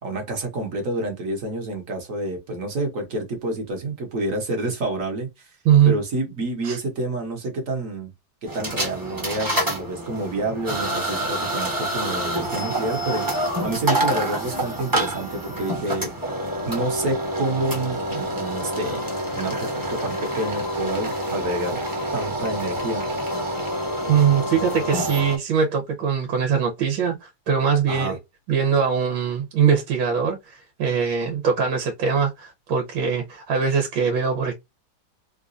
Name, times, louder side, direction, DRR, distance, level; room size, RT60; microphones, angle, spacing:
voice 1, 0.0-5.5 5.8-8.1 8.4-16.1 16.6-21.8 22.1-23.0 27.9-28.2, right 2 dB, 50° right, 1.2 m, -28 dB
voice 2, 5.6-6.0 6.6-6.8 24.1-28.2 28.5-34.5, right 7 dB, 90° right, 1.6 m, -21 dB
sound 1, 8.5-25.4, right 1 dB, 15° right, 0.7 m, -27 dB
3.8 x 2.3 x 2.5 m
omnidirectional pair, 2.1 m